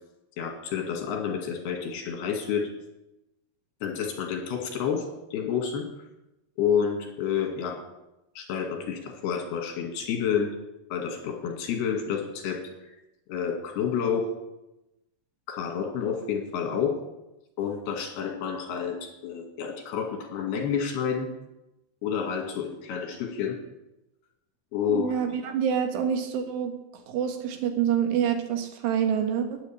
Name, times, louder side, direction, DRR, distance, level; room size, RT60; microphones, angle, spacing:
voice 1, 0.4-2.7 3.8-5.1 5.3-5.9 6.6-7.8 8.4-10.5 10.9-13.0 13.3-14.3 15.5-17.0 17.6-21.3 22.0-23.6 24.7-25.1, left 7 dB, 75° left, 2 dB, 4.2 m, -29 dB
voice 2, 24.9-26.7 27.1-29.6, right 8 dB, 90° right, 5 dB, 3.7 m, -27 dB
10.5 x 10.0 x 8.8 m, 0.95 s
omnidirectional pair, 4.7 m